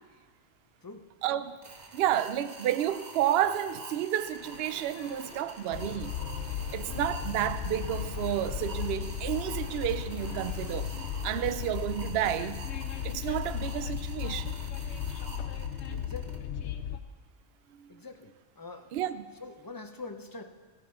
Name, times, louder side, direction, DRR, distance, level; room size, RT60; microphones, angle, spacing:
voice 1, 1.2-1.6 1.9-6.1 6.7-12.7 13.0-14.6 17.8-17.9 18.9-19.3, right 11 dB, 65° right, 0.7 m, -31 dB
sound 1, 1.6-16.4, right 3 dB, 40° right, 1.0 m, -47 dB
sound 2, 4.3-11.5, left 4 dB, 50° left, 1.1 m, -51 dB
Train, 5.7-17.0, left 8 dB, 75° left, 0.9 m, -35 dB
voice 2, 15.9-16.4 17.9-18.9 19.4-20.4, left 3 dB, 25° left, 0.5 m, -44 dB
15.5 x 9.9 x 3.8 m
omnidirectional pair, 1.2 m